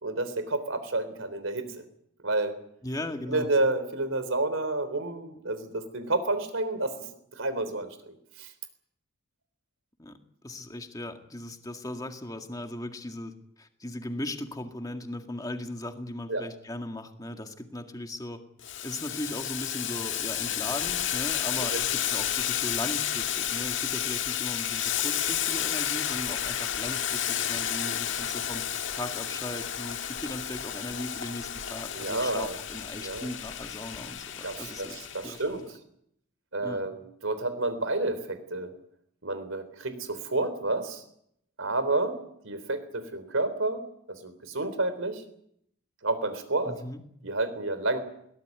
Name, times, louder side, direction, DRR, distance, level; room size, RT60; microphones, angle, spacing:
voice 1, 0.0-1.8 2.2-2.6 3.3-7.0 7.3-8.5 16.3-16.4 31.9-32.6 33.0-33.3 34.4-35.6 36.5-38.7 39.2-41.0 41.6-42.2 42.4-43.8 44.1-45.2 46.0-46.7 47.2-48.0, right 2 dB, 80° right, 11 dB, 3.7 m, -30 dB
voice 2, 2.8-3.5 10.0-10.2 10.4-13.3 13.6-18.4 18.8-28.6 28.9-35.4 36.6-36.8 46.7-47.0, left 1 dB, 15° left, 5 dB, 1.9 m, -38 dB
Boiling, 18.6-35.4, left 10 dB, 70° left, 1.7 m, -31 dB
21.5 x 18.0 x 9.5 m, 0.73 s
head